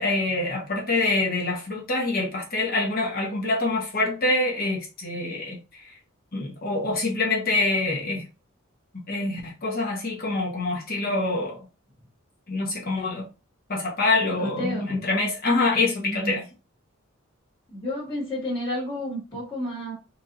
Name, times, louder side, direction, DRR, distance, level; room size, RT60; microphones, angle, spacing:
voice 1, 0.0-5.6 6.3-8.2 9.1-11.6 12.5-13.3 13.7-16.4, left 2 dB, 45° left, 1.1 m, -25 dB
voice 2, 14.4-15.0 16.0-16.4 17.7-19.9, left 1 dB, 25° left, 1.6 m, -31 dB
4.7 x 2.7 x 2.6 m
head